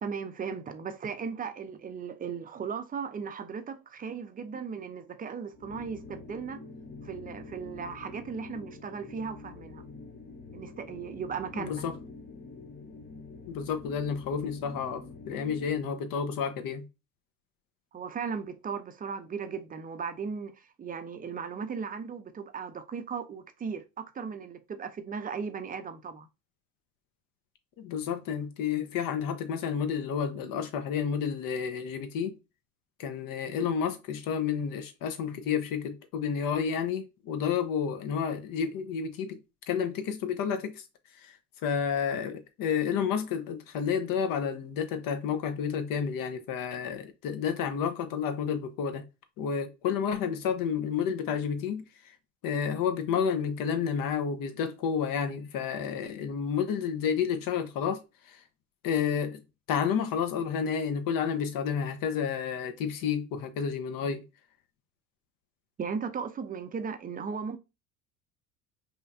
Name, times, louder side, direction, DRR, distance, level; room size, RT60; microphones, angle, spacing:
voice 1, 0.0-6.6 7.0-9.8 10.5-11.8 17.9-26.3 65.8-67.6, right 6 dB, 20° right, 0.7 m, -37 dB
sound 1, 5.5-15.9, left 3 dB, 20° left, 0.8 m, -46 dB
voice 2, 11.5-11.9 13.5-16.8 27.8-32.3 33.0-39.4 39.7-40.8 41.2-41.4 41.6-49.0 49.4-51.9 52.4-58.4 58.8-59.4 59.7-64.2, left 7 dB, 45° left, 1.1 m, -30 dB
5.3 x 3.2 x 2.7 m
hypercardioid pair, 75°, 46 cm